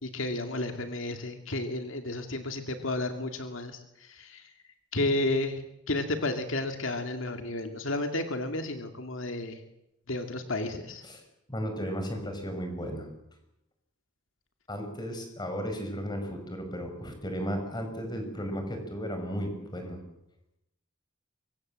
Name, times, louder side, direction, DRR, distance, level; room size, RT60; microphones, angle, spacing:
voice 1, 0.0-4.5 4.9-5.6 5.9-9.6 10.1-11.0, left 2 dB, 75° left, 6 dB, 2.3 m, -32 dB
voice 2, 11.5-13.1 14.7-20.0, equal, 20° left, 5 dB, 5.6 m, -34 dB
24.5 x 23.5 x 7.6 m, 0.85 s
head